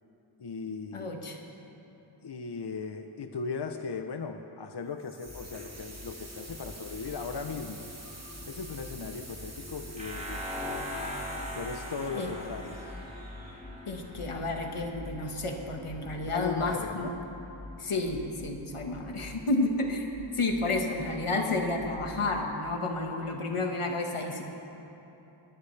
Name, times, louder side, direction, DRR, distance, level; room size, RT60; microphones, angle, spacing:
voice 1, 0.4-1.1 2.2-7.8 8.5-10.9 11.6-12.8 16.0-17.3, left 5 dB, 55° left, 6 dB, 0.8 m, -38 dB
voice 2, 0.9-1.4 12.1-12.3 13.9-17.1 17.8-20.1 20.3-24.4, left 2 dB, 90° left, 2 dB, 1.6 m, -31 dB
sound 1, 5.0-13.9, right 2 dB, 30° right, 2.1 m, -48 dB
sound 2, 5.2-22.5, left 2 dB, 15° left, 1.0 m, -46 dB
sound 3, 10.0-14.8, equal, 15° right, 2.9 m, -39 dB
20.5 x 18.0 x 3.3 m, 3.0 s
wide cardioid pair, 60°, 49 cm